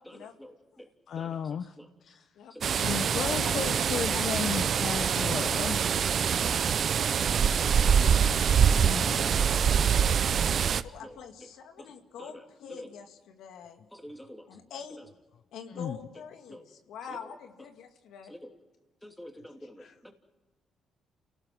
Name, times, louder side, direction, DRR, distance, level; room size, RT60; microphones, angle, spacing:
voice 1, 0.0-0.9 1.1-1.9 2.5-5.2 5.5-5.8 6.0-8.1 9.9-10.2 10.6-11.5 11.8-12.9 13.9-14.6 15.0-15.1 15.7-15.9 16.5-16.6 17.0-17.3 18.2-18.5 19.0-20.1, equal, 5° left, 4 dB, 3.1 m, -48 dB
voice 2, 1.1-1.8 2.0-2.2 2.8-5.9 8.8-9.5 15.7-16.0 19.8-19.9, left 8 dB, 65° left, 9 dB, 0.9 m, -35 dB
sound 1, 2.6-10.8, right 7 dB, 55° right, 0.7 m, -25 dB
voice 3, 3.2-4.6 10.8-13.9 14.5-15.0 15.5-18.3, left 7 dB, 80° left, 5 dB, 2.1 m, -45 dB
29.0 x 18.0 x 6.0 m, 1.1 s
cardioid pair, 90°, 0 cm